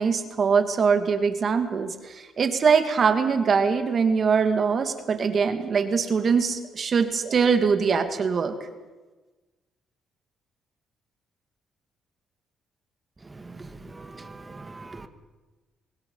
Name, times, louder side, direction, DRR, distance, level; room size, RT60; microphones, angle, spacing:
voice 1, 0.0-8.5, right 5 dB, 50° right, 7 dB, 2.4 m, -22 dB
voice 2, 13.4-15.1, right 3 dB, 25° right, 9 dB, 2.1 m, -42 dB
25.0 x 20.0 x 5.7 m, 1.2 s
cardioid pair, 75°, 0 cm